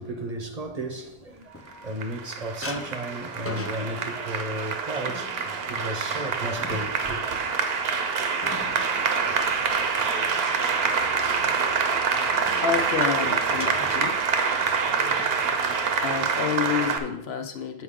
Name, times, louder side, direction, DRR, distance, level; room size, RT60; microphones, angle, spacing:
voice 1, 0.0-7.4, right 1 dB, 40° right, 0.8 m, -34 dB
sound 1, 0.7-2.2 2.6-10.4 10.8-11.1 12.3-14.9 15.2-15.4 15.7-16.0 16.5-17.1, left 2 dB, 20° left, 0.4 m, -41 dB
Applause, 1.7-17.0, right 5 dB, 70° right, 1.0 m, -26 dB
voice 2, 12.6-14.1 16.0-17.8, left 7 dB, 75° left, 1.0 m, -29 dB
9.0 x 4.6 x 3.7 m
omnidirectional pair, 1.1 m